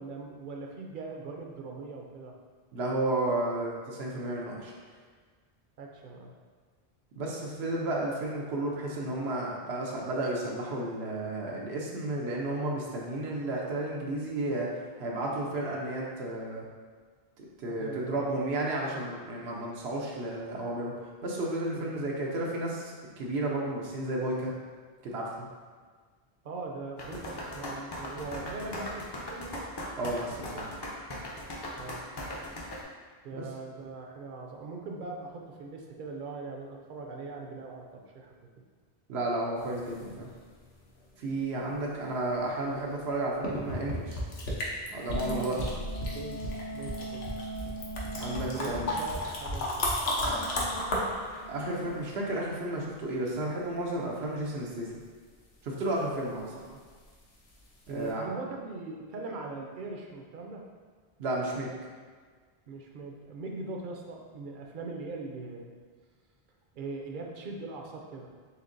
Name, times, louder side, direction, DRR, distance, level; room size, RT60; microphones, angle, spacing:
voice 1, 0.0-2.4 5.8-6.3 17.6-18.6 21.7-21.9 26.4-29.7 31.8-32.1 33.2-38.3 41.6-41.7 45.3-47.3 48.5-50.3 56.5-56.8 57.9-60.6 62.7-65.7 66.7-68.3, right 3 dB, 60° right, 1 dB, 0.7 m, -41 dB
voice 2, 2.7-4.7 7.2-16.6 17.4-24.5 25.0-25.5 30.0-30.7 33.4-33.5 39.1-40.3 41.2-44.2 44.9-45.6 48.1-49.0 51.5-55.0 55.6-56.6 57.9-58.3 61.2-61.7, right 1 dB, 85° right, -3 dB, 0.9 m, -32 dB
sound 1, 27.0-32.8, left 1 dB, 35° left, 0.5 m, -38 dB
sound 2, 39.6-40.6 42.9-43.0 43.4-52.5 57.5-57.6 58.0-58.1, left 1 dB, 85° left, 1.0 m, -34 dB
sound 3, 43.7-52.1, right 1 dB, 60° left, 0.8 m, -41 dB
4.4 x 3.5 x 2.6 m, 1.6 s
omnidirectional pair, 1.0 m